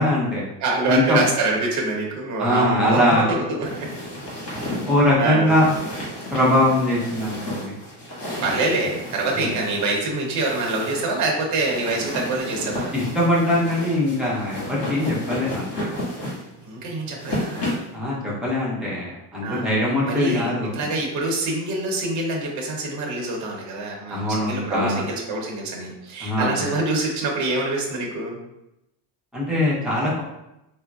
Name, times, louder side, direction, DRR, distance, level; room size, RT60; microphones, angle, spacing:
voice 1, 0.0-0.4 0.9-1.2 2.4-3.3 4.8-5.7 6.3-7.7 9.4-9.6 12.9-15.7 17.9-20.9 24.1-25.0 26.2-26.7 29.3-30.2, left 1 dB, ahead, -7 dB, 0.7 m, -21 dB
voice 2, 0.6-3.9 5.2-5.5 8.4-12.9 16.6-17.6 19.4-19.7 20.0-28.4, right 2 dB, 40° right, -1 dB, 0.8 m, -25 dB
sound 1, 3.6-17.9, left 1 dB, 55° left, 1.5 m, -32 dB
3.6 x 2.0 x 2.3 m, 0.88 s
cardioid pair, 140°, 45 cm